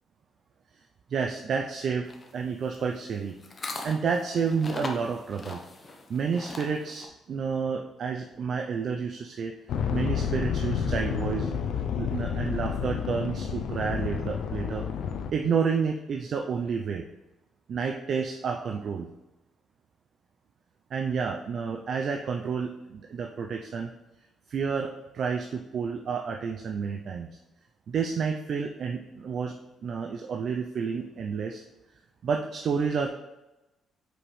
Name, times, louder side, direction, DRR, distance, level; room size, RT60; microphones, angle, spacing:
voice 1, 1.1-3.3 3.8-5.6 6.1-9.5 9.9-11.5 12.0-14.8 15.3-17.0 17.7-19.1 20.9-23.9 24.5-27.3 27.9-29.5 29.8-31.6 32.2-33.1, right 6 dB, 60° right, 3 dB, 0.5 m, -30 dB
sound 1, 2.0-7.1, left 2 dB, 30° left, 0.9 m, -40 dB
sound 2, 9.7-15.3, left 7 dB, 75° left, 0.5 m, -30 dB
6.1 x 5.0 x 3.2 m, 1.0 s
cardioid pair, 90°, 0 cm